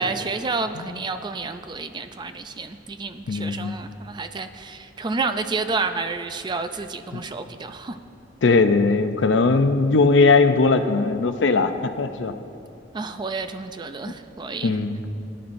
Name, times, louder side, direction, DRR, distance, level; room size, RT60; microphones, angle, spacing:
voice 1, 0.0-8.0 12.9-14.8, right 4 dB, 25° right, 9 dB, 0.4 m, -30 dB
voice 2, 3.3-3.7 7.1-7.2 8.4-12.3 14.6-15.0, left 3 dB, 75° left, 9 dB, 0.5 m, -19 dB
17.5 x 10.0 x 2.6 m, 2.6 s
head